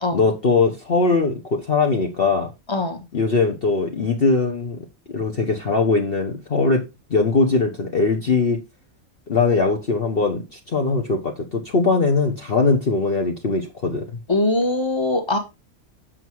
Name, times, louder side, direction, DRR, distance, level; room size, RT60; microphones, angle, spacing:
voice 1, 0.1-2.5 3.1-4.8 5.1-6.8 7.1-8.6 9.3-14.0, left 4 dB, 45° left, 1.3 m, -20 dB
voice 2, 14.3-15.4, left 2 dB, 20° left, 1.6 m, -21 dB
7.8 x 5.7 x 4.6 m
omnidirectional pair, 1.5 m